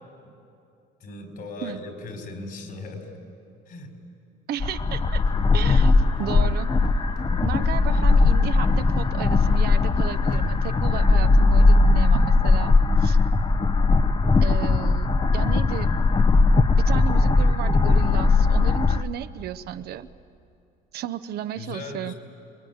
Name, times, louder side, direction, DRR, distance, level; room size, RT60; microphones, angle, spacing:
voice 1, 1.0-3.1 3.7-4.0 21.6-22.1, left 3 dB, 65° left, 4 dB, 4.6 m, -37 dB
voice 2, 4.5-5.2 5.5-6.7 7.4-13.2 14.4-15.9 16.8-20.1 20.9-22.1, right 11 dB, 70° right, 11 dB, 0.8 m, -34 dB
sound 1, 4.6-19.0, left 3 dB, 25° left, 0.8 m, -19 dB
sound 2, 4.8-11.0, equal, 80° left, 6.4 m, -49 dB
28.0 x 21.0 x 9.4 m, 2.6 s
cardioid pair, 110°, 17 cm